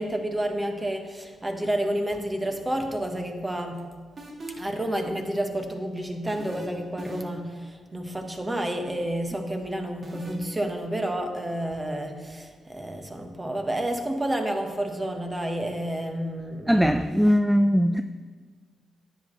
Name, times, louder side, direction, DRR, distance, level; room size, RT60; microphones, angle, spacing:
voice 1, 0.0-3.8 4.6-16.8, right 1 dB, 20° right, 1.4 m, -30 dB
sound 1, 4.2-4.8 6.3-6.6 7.0-7.5 10.0-10.3, right 2 dB, 50° right, 2.0 m, -40 dB
voice 2, 16.7-18.0, equal, 5° right, 0.4 m, -20 dB
10.0 x 8.2 x 3.3 m
supercardioid pair, 50°, 0 cm